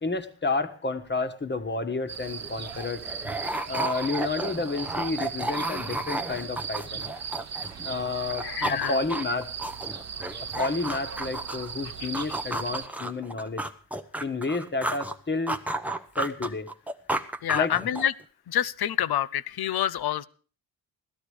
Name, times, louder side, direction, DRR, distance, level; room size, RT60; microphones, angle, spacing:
voice 1, 0.0-3.1 3.7-7.1 7.8-9.5 10.5-13.6 14.2-15.6 16.2-16.7 17.5-17.7, left 3 dB, 25° left, 8 dB, 1.5 m, -30 dB
sound 1, 2.1-2.2 2.4-7.9 8.2-11.7 12.1-15.2 15.5-18.2, right 1 dB, 5° right, 0.9 m, -33 dB
sound 2, 2.1-12.9, right 7 dB, 35° right, 0.9 m, -38 dB
voice 2, 8.4-9.0 17.4-18.1 18.5-20.3, left 11 dB, 55° left, 19 dB, 0.7 m, -27 dB
16.5 x 12.5 x 5.0 m, 0.40 s
cardioid pair, 90°, 46 cm